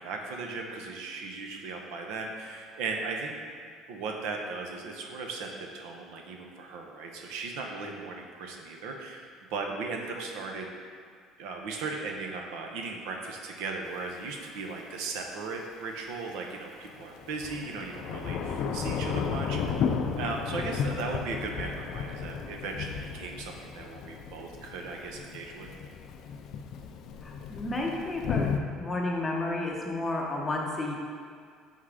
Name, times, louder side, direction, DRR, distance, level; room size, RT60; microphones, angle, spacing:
voice 1, 0.0-3.4 3.9-10.7 11.4-19.9 20.2-25.7, right 4 dB, 80° right, 2 dB, 0.7 m, -37 dB
Thunder / Rain, 13.9-14.0 16.9-28.6, left 6 dB, 50° left, 0.3 m, -34 dB
voice 2, 27.2-28.5 28.8-30.9, left 2 dB, 15° left, -1 dB, 0.6 m, -31 dB
5.7 x 3.6 x 4.9 m, 2.1 s
cardioid pair, 170°, 0 cm